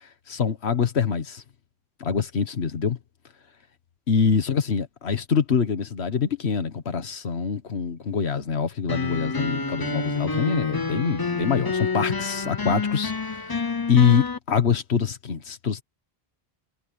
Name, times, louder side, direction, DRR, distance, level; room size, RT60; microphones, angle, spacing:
voice 1, 0.0-1.4 2.0-3.0 4.1-13.5 13.9-15.8, left 6 dB, 75° left, 1.6 m, -24 dB
sound 1, 8.9-14.4, left 4 dB, 25° left, 0.7 m, -28 dB
omnidirectional pair, 1.1 m